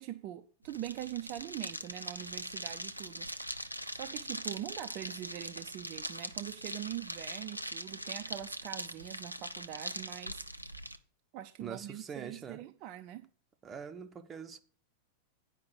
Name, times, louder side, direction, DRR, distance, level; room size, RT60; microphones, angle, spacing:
voice 1, 0.0-3.6 3.9-10.4 11.3-13.3, right 12 dB, 40° right, 0.6 m, -43 dB
sound 1, 0.6-11.0, equal, 90° right, 0.6 m, -42 dB
voice 2, 11.6-12.6 13.6-14.6, right 7 dB, 25° right, 0.9 m, -43 dB
9.6 x 5.4 x 6.8 m
figure-of-eight pair, 90°, 0 cm